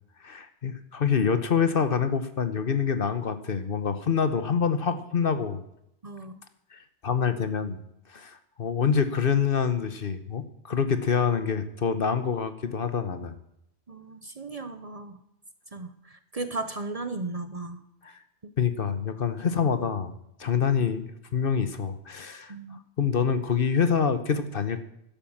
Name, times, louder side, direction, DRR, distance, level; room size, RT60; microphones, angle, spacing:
voice 1, 0.2-5.6 6.7-7.8 8.1-13.4 18.6-20.1 20.4-22.5 23.0-24.8, left 6 dB, 55° left, 10 dB, 1.2 m, -26 dB
voice 2, 6.0-6.3 13.9-15.2 15.7-17.8 18.4-18.5 19.5-19.7 20.8-20.9 22.5-22.8, right 3 dB, 35° right, 10 dB, 0.8 m, -36 dB
12.5 x 10.5 x 7.2 m, 0.79 s
omnidirectional pair, 1.2 m